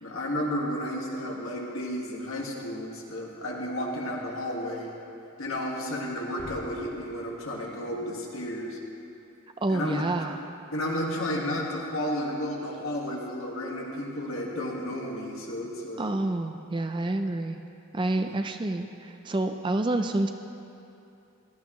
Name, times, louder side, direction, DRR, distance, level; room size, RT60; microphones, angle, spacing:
voice 1, 0.0-4.9 5.4-8.8 9.7-10.0 10.7-16.1 18.1-18.3, left 1 dB, 65° left, -2 dB, 1.7 m, -32 dB
sound 1, 6.4-8.2 8.5-8.6, equal, 50° left, 1.6 m, -48 dB
voice 2, 9.6-10.4 16.0-17.6 17.9-20.3, right 2 dB, 20° right, 6 dB, 0.4 m, -28 dB
17.5 x 12.5 x 3.1 m, 2.8 s
head